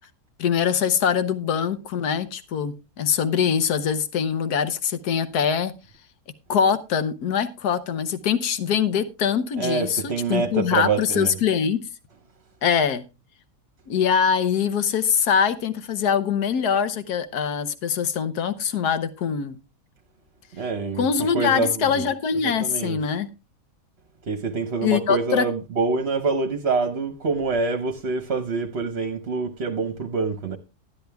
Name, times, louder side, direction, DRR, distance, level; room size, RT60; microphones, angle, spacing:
voice 1, 0.4-5.7 6.5-11.8 12.6-13.0 13.9-19.6 21.0-23.3 24.8-25.4, left 7 dB, 70° left, 1.6 m, -23 dB
voice 2, 9.6-11.3 20.5-22.1 22.4-23.0 24.3-30.6, right 4 dB, 45° right, 1.1 m, -26 dB
12.5 x 10.5 x 3.5 m
omnidirectional pair, 1.8 m